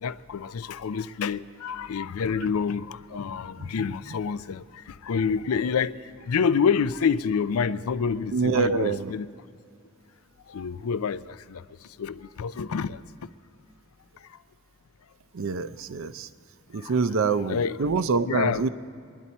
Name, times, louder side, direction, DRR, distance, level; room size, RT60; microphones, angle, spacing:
voice 1, 0.0-9.3 10.5-13.0 14.2-14.4 16.7-16.9 17.3-17.8 18.3-18.7, left 6 dB, 85° left, 0.4 m, -28 dB
voice 2, 8.3-9.1 15.3-16.3 16.7-18.7, right 4 dB, 65° right, 0.5 m, -26 dB
24.0 x 10.5 x 4.2 m
head